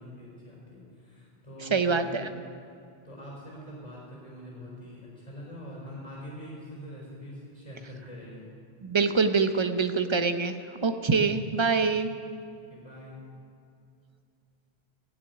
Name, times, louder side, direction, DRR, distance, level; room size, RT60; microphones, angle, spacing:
voice 1, 0.0-1.7 2.0-2.2 3.0-8.5 12.7-13.2, equal, 30° left, -5 dB, 4.7 m, -44 dB
voice 2, 1.7-2.3 8.8-10.5 10.8-12.1, right 4 dB, 30° right, 8 dB, 0.7 m, -25 dB
15.5 x 8.2 x 9.7 m, 2.4 s
omnidirectional pair, 1.0 m